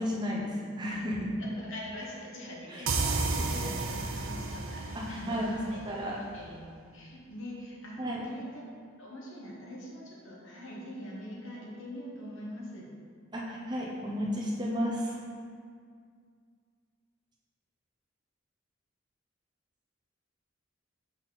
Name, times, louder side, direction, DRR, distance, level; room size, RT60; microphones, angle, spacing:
voice 1, 0.0-1.3 2.7-2.8 4.9-5.5 5.8-6.2 8.0-8.2 13.3-15.2, equal, 20° right, -4 dB, 0.7 m, -33 dB
voice 2, 1.4-8.6 9.0-12.9, left 1 dB, 80° left, -4 dB, 1.3 m, -43 dB
sound 1, 2.9-6.4, right 3 dB, 90° right, 0.5 m, -33 dB
6.0 x 4.2 x 4.0 m, 2.1 s
head